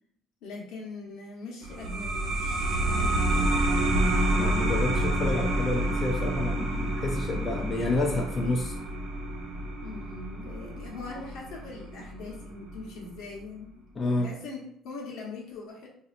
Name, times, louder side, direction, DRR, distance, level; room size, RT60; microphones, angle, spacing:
voice 1, 0.4-3.6 9.8-15.9, left 3 dB, 70° left, 0 dB, 1.0 m, -41 dB
sound 1, 1.6-12.8, right 1 dB, 60° right, 0.8 m, -28 dB
voice 2, 4.4-8.7 14.0-14.3, left 2 dB, 25° left, 1 dB, 0.4 m, -29 dB
4.0 x 2.6 x 2.5 m, 0.68 s
cardioid pair, 165°, 0 cm